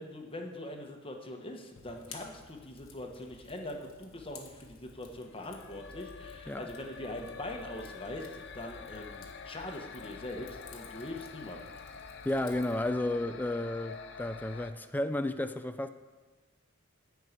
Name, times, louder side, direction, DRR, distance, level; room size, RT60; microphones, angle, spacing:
voice 1, 0.0-11.7, left 1 dB, 25° left, 2 dB, 1.1 m, -42 dB
Fire, 1.8-12.9, left 4 dB, 85° left, 1.4 m, -54 dB
sound 1, 5.2-14.7, left 5 dB, 60° left, 0.6 m, -47 dB
voice 2, 12.2-15.9, left 1 dB, 10° left, 10 dB, 0.4 m, -32 dB
10.5 x 4.7 x 8.1 m, 1.3 s
head